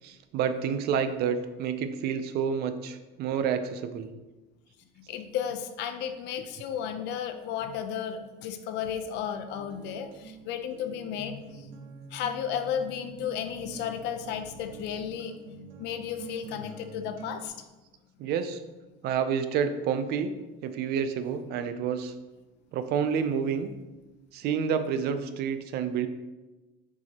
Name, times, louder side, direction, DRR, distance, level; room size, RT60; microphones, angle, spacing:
voice 1, 0.0-4.1 18.2-18.6 19.0-20.3 20.6-22.1 22.7-23.7 24.3-26.1, right 7 dB, 55° right, 10 dB, 0.5 m, -29 dB
voice 2, 5.0-11.7 12.1-15.3 15.8-17.5, left 8 dB, 60° left, 8 dB, 0.6 m, -33 dB
Acoustic guitar, 9.5-17.5, right 5 dB, 85° right, 1.2 m, -47 dB
8.0 x 4.8 x 2.9 m, 1.1 s
cardioid pair, 170°, 20 cm